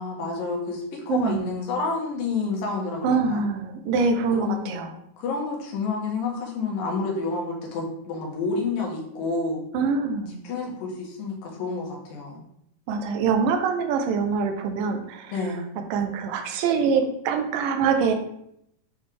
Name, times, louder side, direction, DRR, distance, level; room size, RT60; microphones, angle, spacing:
voice 1, 0.0-3.4 4.3-4.8 5.2-9.6 10.4-12.4 15.3-15.7, left 4 dB, 85° left, -1 dB, 3.0 m, -29 dB
voice 2, 1.1-1.6 3.0-4.9 9.7-10.4 12.9-15.3 15.9-18.1, right 5 dB, 90° right, 5 dB, 2.3 m, -24 dB
8.0 x 3.7 x 3.3 m, 0.74 s
omnidirectional pair, 3.9 m